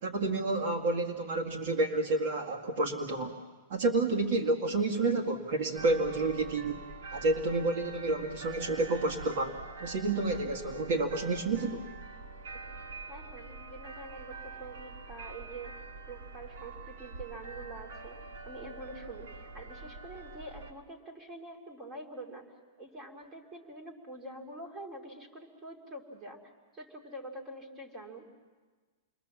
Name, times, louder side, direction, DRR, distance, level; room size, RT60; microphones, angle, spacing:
voice 1, 0.0-3.3 3.7-6.8 7.1-11.9, right 2 dB, 50° right, 2 dB, 1.9 m, -30 dB
sound 1, 5.8-20.7, right 3 dB, 65° right, 1.9 m, -45 dB
voice 2, 13.1-15.8 16.1-18.2 18.5-22.5 22.8-28.3, right 2 dB, 15° right, 1 dB, 2.8 m, -46 dB
28.5 x 22.5 x 7.2 m, 1.4 s
supercardioid pair, 170°, 0 cm